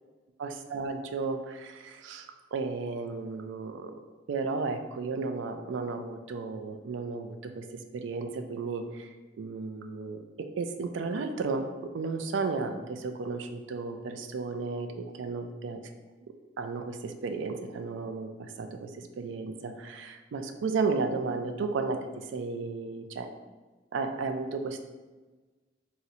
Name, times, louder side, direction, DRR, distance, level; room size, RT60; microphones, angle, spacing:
voice 1, 0.4-3.9 4.3-9.1 9.4-15.8 16.6-23.3 23.9-24.8, right 4 dB, 80° right, 6 dB, 0.3 m, -34 dB
3.8 x 2.1 x 2.7 m, 1.3 s
head